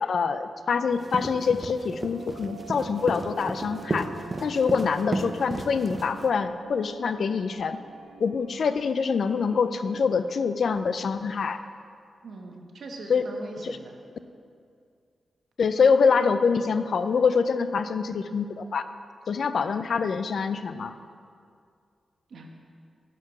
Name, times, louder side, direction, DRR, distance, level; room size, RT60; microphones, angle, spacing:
voice 1, 0.0-4.1 4.4-7.8 8.2-11.6 13.1-13.2 13.6-13.8 15.6-18.8 19.3-20.9, left 5 dB, 65° left, 11 dB, 0.4 m, -25 dB
sound 1, 0.9-6.3, right 2 dB, 25° right, 0.5 m, -33 dB
sound 2, 2.0-10.1, right 9 dB, 85° right, 1.5 m, -48 dB
voice 2, 12.2-13.9 22.3-22.5, right 2 dB, 70° right, 2 dB, 1.0 m, -41 dB
10.5 x 4.7 x 5.8 m, 2.3 s
wide cardioid pair, 150°, 0 cm